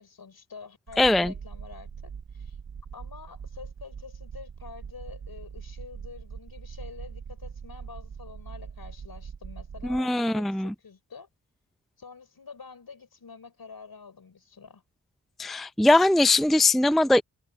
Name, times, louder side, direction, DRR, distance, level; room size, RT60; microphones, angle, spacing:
voice 1, 0.0-2.6 2.9-11.3 12.0-14.8, left 5 dB, 60° left, 5.0 m, -47 dB
sound 1, 0.9-10.0, right 6 dB, 70° right, 4.9 m, -42 dB
voice 2, 1.0-1.3 9.9-10.7 15.4-17.2, left 2 dB, ahead, 0.6 m, -21 dB
cardioid pair, 45°, 40 cm